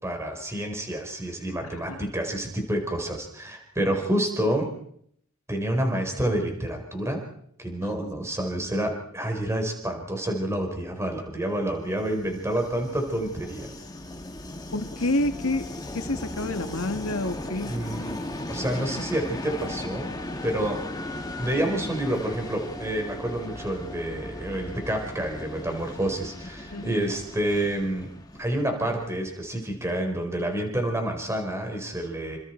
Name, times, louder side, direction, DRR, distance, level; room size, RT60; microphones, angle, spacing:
voice 1, 0.0-4.7 5.5-7.2 7.6-13.7 17.7-18.2 18.5-20.1 20.4-20.8 21.4-28.1 28.4-32.4, right 1 dB, 15° right, 3 dB, 4.4 m, -28 dB
voice 2, 1.6-2.0 14.7-15.7 15.9-17.7 26.7-27.0, left 2 dB, 75° left, 7 dB, 2.0 m, -28 dB
Train, 11.7-29.5, left 1 dB, 20° left, 2.1 m, -37 dB
28.0 x 26.5 x 4.6 m, 0.68 s
head